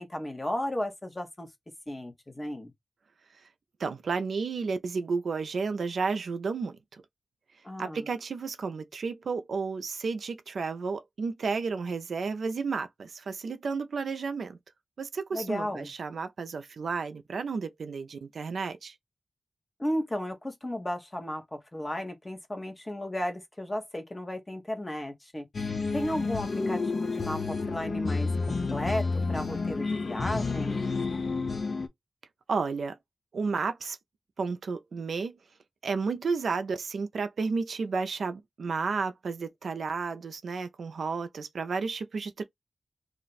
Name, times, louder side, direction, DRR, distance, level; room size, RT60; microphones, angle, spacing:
voice 1, 0.0-1.5 1.9-2.7 7.6-8.1 15.3-15.9 19.8-30.8, left 1 dB, 20° left, 0.8 m, -34 dB
voice 2, 3.8-7.0 7.8-14.6 15.0-18.9 32.5-33.0 33.3-34.0 34.4-35.4 35.8-42.4, right 4 dB, 80° right, 0.4 m, -32 dB
sound 1, 25.5-31.9, left 4 dB, 50° left, 0.4 m, -30 dB
2.4 x 2.1 x 3.9 m
wide cardioid pair, 135°, 0 cm